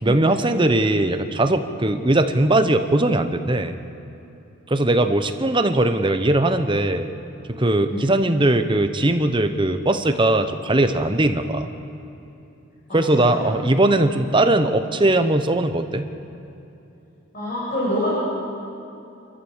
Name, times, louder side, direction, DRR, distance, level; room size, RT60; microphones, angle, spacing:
voice 1, 0.0-3.7 4.7-7.1 7.5-11.7 12.9-16.1, right 1 dB, 20° right, 8 dB, 0.9 m, -20 dB
voice 2, 12.9-13.4 17.3-18.2, left 1 dB, 35° left, -8 dB, 5.8 m, -26 dB
27.5 x 14.0 x 7.3 m, 2.9 s
head